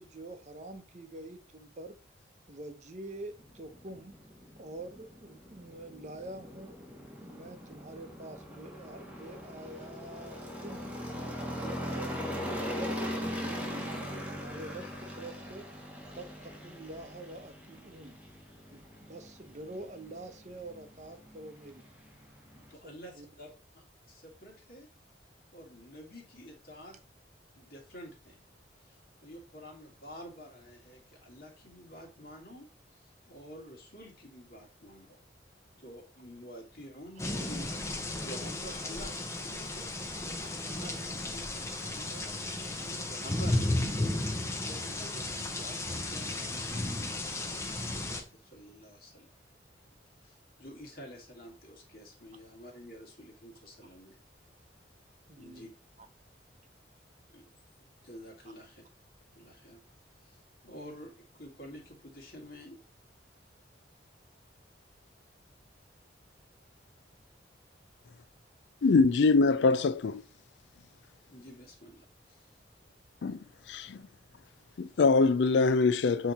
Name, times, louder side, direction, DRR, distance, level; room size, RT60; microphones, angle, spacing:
voice 1, 0.0-2.0 2.5-4.2 4.6-6.8 7.2-11.0 11.5-15.6 16.1-18.2 18.7-21.8 22.8-23.3 55.3-55.6 56.0-56.1, right 2 dB, 40° right, 0.8 m, -46 dB
sound 1, 3.4-22.7, equal, 10° right, 1.1 m, -41 dB
voice 2, 22.5-24.9 25.5-27.0 27.6-28.4 28.8-35.2 35.7-49.3 50.2-54.2 55.4-55.7 57.3-57.5 58.0-58.8 59.3-59.8 60.2-62.8 71.3-72.6, equal, 50° left, 2.0 m, -50 dB
sound 2, 37.2-48.2, left 2 dB, 15° left, 0.8 m, -34 dB
voice 3, 68.8-70.2 73.2-73.4 73.7-74.0 74.8-76.3, left 4 dB, 70° left, 0.4 m, -24 dB
8.0 x 3.1 x 4.1 m
head